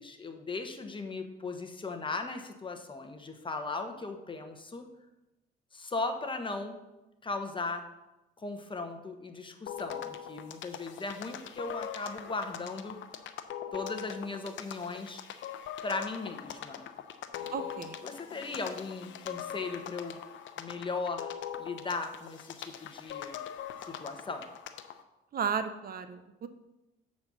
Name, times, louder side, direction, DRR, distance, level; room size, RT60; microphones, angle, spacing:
voice 1, 0.0-4.9 5.7-6.8 7.2-7.9 8.4-13.0 13.7-15.2 15.8-16.9 18.0-20.2 20.6-23.4 23.8-24.4, left 3 dB, 25° left, 5 dB, 1.0 m, -37 dB
sound 1, 9.7-25.0, left 9 dB, 75° left, 0.6 m, -42 dB
voice 2, 17.5-18.0 25.3-26.5, right 6 dB, 50° right, 10 dB, 0.6 m, -34 dB
7.6 x 4.2 x 6.0 m, 1.0 s
cardioid pair, 90°, 20 cm